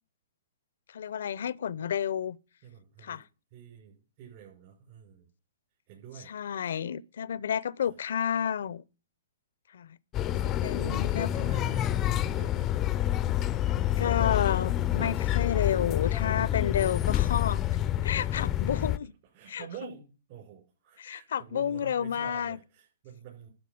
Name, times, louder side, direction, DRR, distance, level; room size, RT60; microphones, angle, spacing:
voice 1, 0.9-2.4 3.0-3.2 6.3-8.8 9.7-10.0 10.3-11.5 14.0-17.6 18.0-19.1 19.5-19.6 21.0-22.6, left 8 dB, 70° left, 0.6 m, -31 dB
voice 2, 2.6-3.2 3.5-5.3 5.9-6.7 7.8-7.9 10.2-12.7 13.3-13.8 15.0-15.3 15.8-16.7 18.4-18.7 19.3-23.5, right 8 dB, 45° right, 5.8 m, -48 dB
sound 1, 10.1-19.0, left 12 dB, 25° left, 0.5 m, -28 dB
12.0 x 5.7 x 8.6 m
hypercardioid pair, 135°, 0 cm